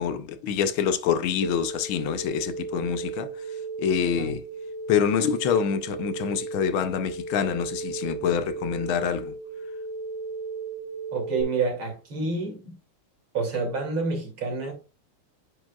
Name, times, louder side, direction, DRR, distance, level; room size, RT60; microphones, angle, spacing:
voice 1, 0.0-3.4 3.8-4.4 4.9-9.3, left 8 dB, 80° left, 1.5 m, -26 dB
sound 1, 1.4-11.4, right 4 dB, 55° right, 0.7 m, -35 dB
voice 2, 11.1-12.7 13.3-14.7, right 4 dB, 75° right, 3.3 m, -28 dB
9.2 x 5.0 x 2.3 m
omnidirectional pair, 2.3 m